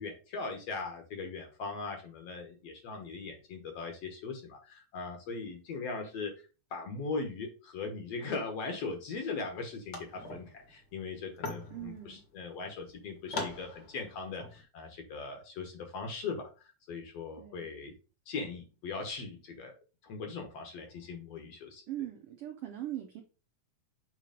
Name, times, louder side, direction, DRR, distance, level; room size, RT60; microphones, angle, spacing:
voice 1, 0.0-6.3 6.7-17.9 18.3-19.7 20.0-21.8, left 4 dB, 60° left, 4 dB, 2.0 m, -39 dB
sound 1, 9.4-9.5 9.8-14.6, left 3 dB, 45° left, 1.5 m, -42 dB
voice 2, 11.7-12.2 17.3-17.7 21.9-23.2, right 13 dB, 70° right, 3 dB, 1.4 m, -40 dB
7.6 x 3.1 x 5.1 m, 0.32 s
omnidirectional pair, 3.6 m